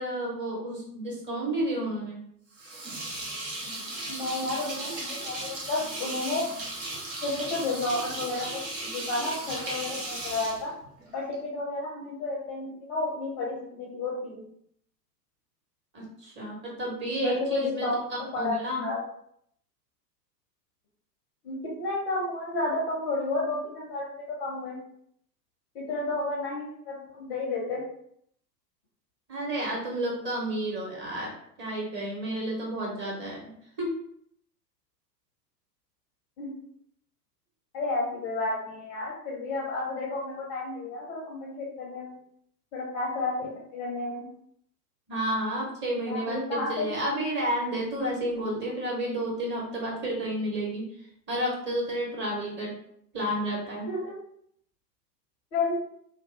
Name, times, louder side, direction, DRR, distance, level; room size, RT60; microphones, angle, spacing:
voice 1, 0.0-2.2 15.9-17.9 18.4-18.8 29.3-31.3 31.6-33.5 33.8-33.9 45.1-50.9 51.3-52.7 53.1-53.9, right 1 dB, 20° right, -3 dB, 0.9 m, -31 dB
sound 1, 2.5-11.3, right 2 dB, 80° right, 1.0 m, -36 dB
voice 2, 4.1-6.5 7.2-10.7 11.1-14.4 17.2-19.0 21.4-24.8 25.7-27.8 36.4-36.5 37.7-42.1 42.7-43.3 43.7-44.3 46.1-46.9 53.9-54.1 55.5-55.8, left 2 dB, 25° left, -3 dB, 0.5 m, -31 dB
2.7 x 2.2 x 2.7 m, 0.69 s
figure-of-eight pair, 95°, 49 cm